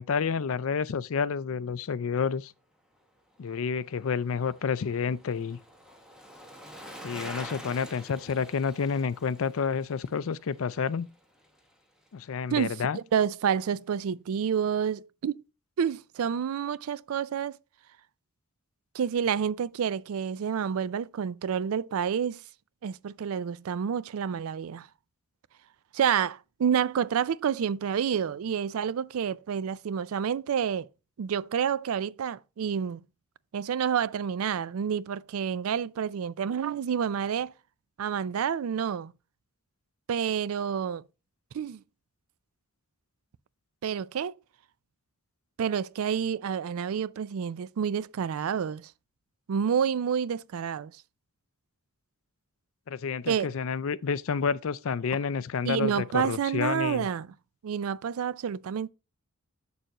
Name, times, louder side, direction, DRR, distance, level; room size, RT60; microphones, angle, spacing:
voice 1, 0.0-2.5 3.4-5.6 7.0-11.1 12.1-13.0 52.9-57.1, left 6 dB, 70° left, 0.4 m, -29 dB
Bicycle, 3.3-11.8 12.1-12.2, equal, 5° right, 1.4 m, -47 dB
voice 2, 12.5-15.4 15.8-17.6 18.9-22.4 22.8-24.9 25.9-30.9 31.2-33.0 33.5-37.5 38.0-39.1 40.1-41.0 41.5-41.8 43.8-44.3 45.6-48.9 49.5-50.9 53.3-53.5 55.7-57.3 57.6-58.9, right 7 dB, 80° right, 0.4 m, -29 dB
7.6 x 6.8 x 2.9 m
head